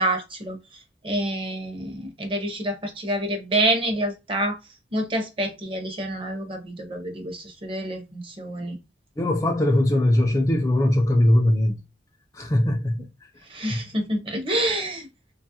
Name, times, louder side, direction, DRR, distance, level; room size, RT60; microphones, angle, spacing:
voice 1, 0.0-4.6 4.9-8.8 13.4-15.1, right 1 dB, 30° right, 0.6 m, -27 dB
voice 2, 9.2-11.8 12.3-13.1 13.7-13.8, left 1 dB, 15° left, 0.3 m, -20 dB
2.9 x 2.3 x 2.7 m
head